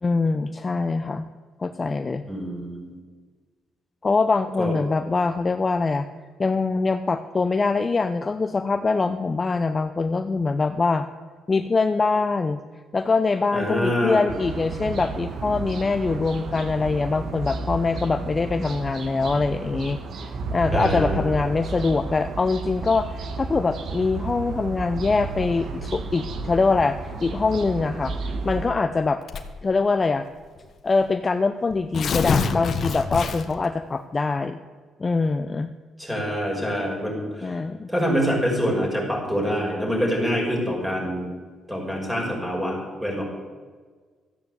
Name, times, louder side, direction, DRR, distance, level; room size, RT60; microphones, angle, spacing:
voice 1, 0.0-1.3 1.6-2.2 4.0-6.1 6.4-11.1 11.5-12.6 12.9-20.0 20.5-29.2 29.6-30.3 30.8-34.6 35.0-35.7 37.4-37.9, left 4 dB, 30° left, 9 dB, 0.6 m, -23 dB
voice 2, 2.3-2.9 4.6-4.7 13.5-14.2 20.7-21.2 36.0-37.6 37.9-41.3 41.7-43.2, equal, 5° right, -1 dB, 5.5 m, -25 dB
sound 1, 14.3-28.7, right 4 dB, 65° right, 1.5 m, -32 dB
Tearing, 29.3-29.7 30.6-30.7 30.9-31.0 31.7-33.7, left 5 dB, 55° left, 1.3 m, -25 dB
13.5 x 8.9 x 7.9 m, 1.5 s
cardioid pair, 90°, 0 cm